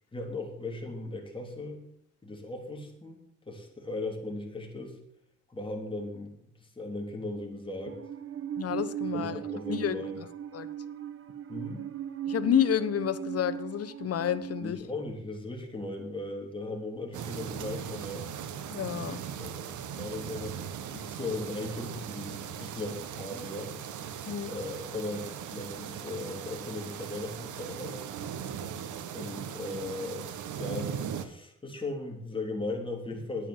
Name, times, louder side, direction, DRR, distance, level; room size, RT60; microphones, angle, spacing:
voice 1, 0.1-1.8 2.2-3.2 3.5-5.0 5.5-8.0 9.1-10.2 11.5-11.9 14.6-18.3 19.0-19.7 20.0-20.6 20.9-23.7 24.5-28.1 29.1-30.3 30.6-33.5, left 2 dB, 15° left, 1 dB, 3.7 m, -37 dB
Musical instrument, 7.9-14.7, right 9 dB, 45° right, 1.1 m, -37 dB
voice 2, 8.6-9.4 9.7-10.0 10.5-10.7 12.3-14.8 18.7-19.2 24.3-24.5, left 10 dB, 50° left, 12 dB, 1.0 m, -29 dB
sound 1, 17.1-31.3, right 8 dB, 75° right, 1.3 m, -39 dB
10.0 x 9.6 x 7.5 m, 0.68 s
cardioid pair, 90°, 30 cm